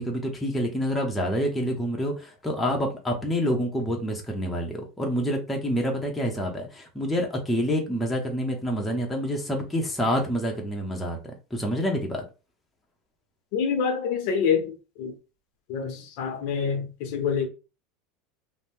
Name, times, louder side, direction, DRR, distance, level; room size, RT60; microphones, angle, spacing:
voice 1, 0.0-12.3, equal, 5° left, 0.7 m, -27 dB
voice 2, 13.5-15.1 15.7-17.5, left 6 dB, 60° left, 0.7 m, -26 dB
2.7 x 2.0 x 3.5 m
supercardioid pair, 150°, 0 cm